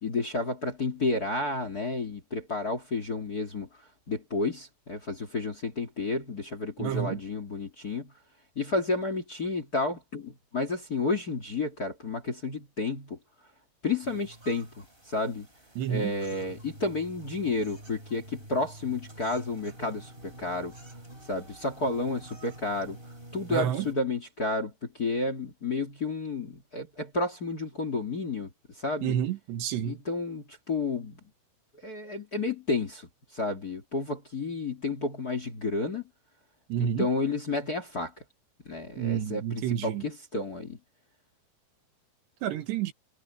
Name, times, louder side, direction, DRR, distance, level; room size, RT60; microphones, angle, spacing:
voice 1, 0.0-3.7 4.1-8.1 8.6-13.2 13.8-15.5 15.9-20.7 21.3-23.0 23.3-29.2 29.8-31.2 31.8-36.0 36.8-38.1 38.7-40.8, left 3 dB, 30° left, 2.1 m, -31 dB
voice 2, 6.8-7.2 15.8-16.1 23.5-23.9 29.0-30.0 36.7-37.1 39.0-40.0 42.4-42.9, right 9 dB, 80° right, 4.0 m, -29 dB
sound 1, 14.0-23.9, right 1 dB, 15° right, 4.8 m, -48 dB
omnidirectional pair, 4.9 m